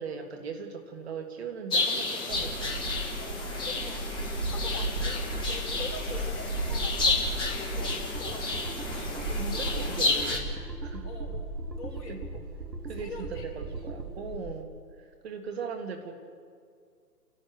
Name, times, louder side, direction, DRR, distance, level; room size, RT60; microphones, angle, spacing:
voice 1, 0.0-2.7 8.9-10.5 10.8-11.1 12.1-12.2 12.8-14.7 15.0-16.1, right 5 dB, 40° right, 5 dB, 1.7 m, -39 dB
sound 1, 1.7-10.4, left 3 dB, 10° left, 1.6 m, -31 dB
sound 2, 2.3-14.6, right 2 dB, 15° right, 0.8 m, -36 dB
voice 2, 3.2-8.6 11.0-11.4 11.8-12.5 12.9-13.6 14.3-14.4, left 3 dB, 30° left, -1 dB, 4.3 m, -44 dB
sound 3, 7.8-14.1, right 3 dB, 85° right, 2.8 m, -40 dB
30.0 x 12.0 x 7.9 m, 2.1 s
figure-of-eight pair, 145°, 50 cm